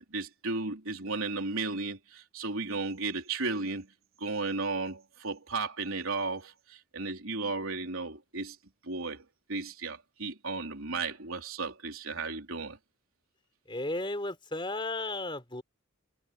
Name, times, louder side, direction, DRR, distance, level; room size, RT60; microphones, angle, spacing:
voice 1, 0.1-3.9 4.2-8.6 8.8-9.2 9.5-12.8, right 3 dB, 70° right, 3.7 m, -34 dB
voice 2, 13.7-15.6, left 2 dB, 25° left, 3.5 m, -34 dB
head